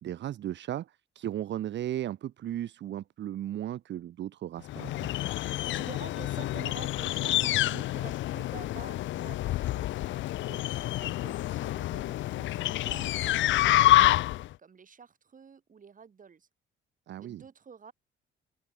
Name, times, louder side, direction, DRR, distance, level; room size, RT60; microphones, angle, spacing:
voice 1, 0.0-5.1 17.1-17.4, right 12 dB, 65° right, 0.9 m, -36 dB
sound 1, 4.7-14.5, left 15 dB, 70° left, 0.5 m, -28 dB
voice 2, 5.3-10.0 10.4-14.2 14.6-16.5 17.2-17.9, right 6 dB, 40° right, 4.1 m, -49 dB
open air
cardioid pair, 90°, 20 cm